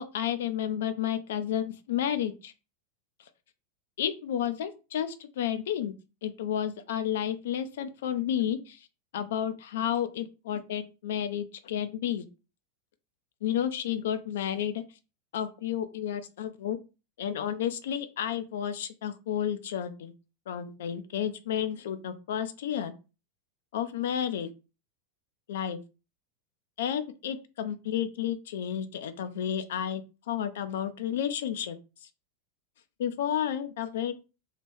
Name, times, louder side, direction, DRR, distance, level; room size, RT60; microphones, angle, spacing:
voice 1, 0.0-2.5 4.0-5.9 6.2-8.9 9.1-12.3 13.4-14.8 15.3-16.8 17.2-20.1 20.5-22.9 23.7-24.5 25.5-25.8 26.8-31.8 33.0-34.2, left 9 dB, 60° left, 10 dB, 0.4 m, -31 dB
2.8 x 2.5 x 3.4 m, 0.31 s
figure-of-eight pair, 90°, 0 cm